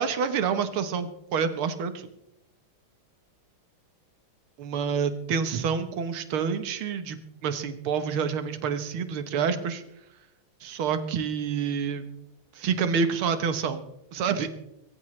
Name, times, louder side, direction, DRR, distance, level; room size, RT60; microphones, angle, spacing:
voice 1, 0.0-2.1 4.6-9.8 10.6-12.1 12.6-13.8 14.1-14.5, right 6 dB, 90° right, 9 dB, 2.0 m, -28 dB
22.5 x 14.5 x 3.2 m, 0.85 s
omnidirectional pair, 2.3 m